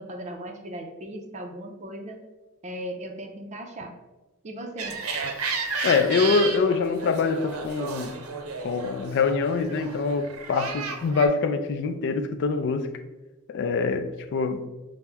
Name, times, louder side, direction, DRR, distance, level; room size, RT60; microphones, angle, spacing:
voice 1, 0.0-2.2 2.6-3.9 4.4-5.0, right 1 dB, 35° right, 0.5 m, -37 dB
sound 1, 4.8-11.3, right 5 dB, 80° right, 0.6 m, -33 dB
voice 2, 5.8-8.2 8.6-12.9 13.5-14.7, left 4 dB, 55° left, 0.3 m, -24 dB
5.8 x 2.1 x 3.4 m
head